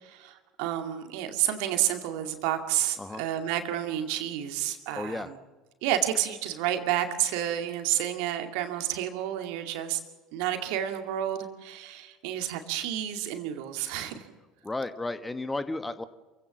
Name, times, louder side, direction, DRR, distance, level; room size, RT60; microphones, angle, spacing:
voice 1, 0.0-5.3 5.8-10.0 10.3-14.3, right 11 dB, 60° right, 6 dB, 2.3 m, -30 dB
voice 2, 4.9-5.3 14.6-16.0, left 2 dB, 15° left, 11 dB, 1.3 m, -33 dB
27.5 x 16.5 x 7.3 m, 1.2 s
figure-of-eight pair, 65°, 0 cm